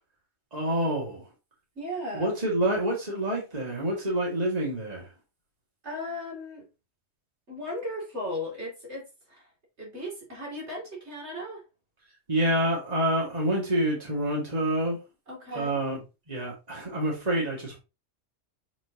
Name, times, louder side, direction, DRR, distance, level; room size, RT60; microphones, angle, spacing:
voice 1, 0.5-1.3 2.1-5.1 12.3-15.0 15.5-17.8, right 1 dB, 35° right, 2.3 m, -27 dB
voice 2, 1.7-2.4 5.8-6.7 7.5-9.5 9.8-11.6 15.3-15.8, left 1 dB, 70° right, 3.0 m, -36 dB
7.1 x 4.5 x 2.9 m
omnidirectional pair, 1.2 m